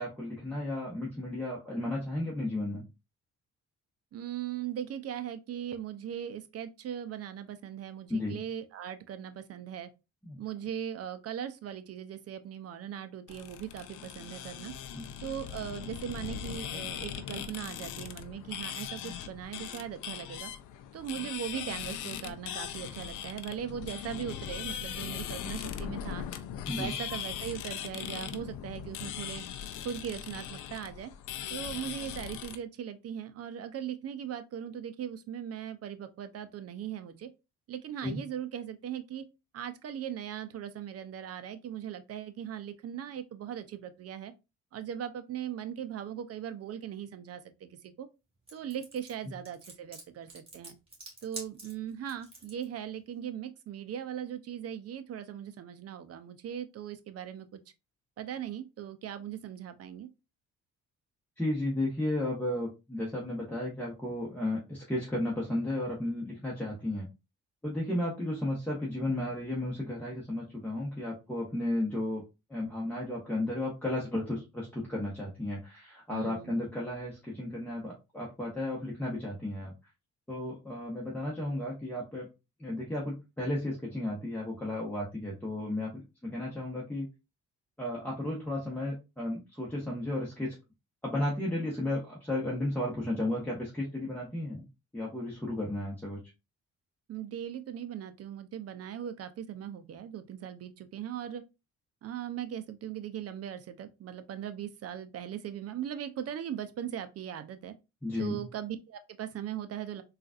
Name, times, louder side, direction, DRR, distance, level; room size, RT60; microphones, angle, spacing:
voice 1, 0.0-2.8 8.1-8.4 10.2-10.4 14.9-15.1 26.7-26.9 38.0-38.2 61.4-67.1 67.6-72.2 72.5-79.7 80.3-82.3 82.6-87.1 87.8-90.5 91.0-94.6 94.9-96.2 108.0-108.5, left 1 dB, 5° left, 1.0 m, -33 dB
voice 2, 4.1-9.9 10.4-14.7 15.2-20.5 20.9-26.2 26.7-29.4 29.8-31.1 31.5-37.3 37.7-39.3 39.5-44.3 44.7-48.1 48.5-50.8 51.2-57.6 58.2-60.1 76.1-76.6 97.1-101.4 102.0-107.7 108.2-110.0, right 9 dB, 55° right, 0.6 m, -39 dB
sound 1, 13.3-32.6, left 9 dB, 90° left, 0.5 m, -40 dB
sound 2, 48.5-52.6, right 2 dB, 20° right, 1.5 m, -46 dB
3.8 x 2.5 x 2.4 m
cardioid pair, 90°, 30 cm